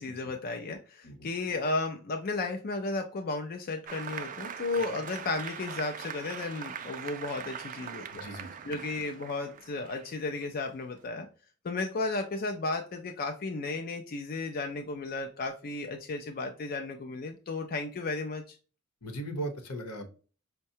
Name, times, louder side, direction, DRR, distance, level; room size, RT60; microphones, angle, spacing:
voice 1, 0.0-8.3 8.6-11.3 11.6-18.6, left 3 dB, 40° left, 5 dB, 0.4 m, -34 dB
Applause, 3.9-11.1, right 7 dB, 35° right, 0.4 m, -42 dB
voice 2, 8.1-8.5 19.0-20.1, right 1 dB, 80° left, 5 dB, 0.9 m, -38 dB
5.4 x 2.2 x 2.7 m, 0.37 s
head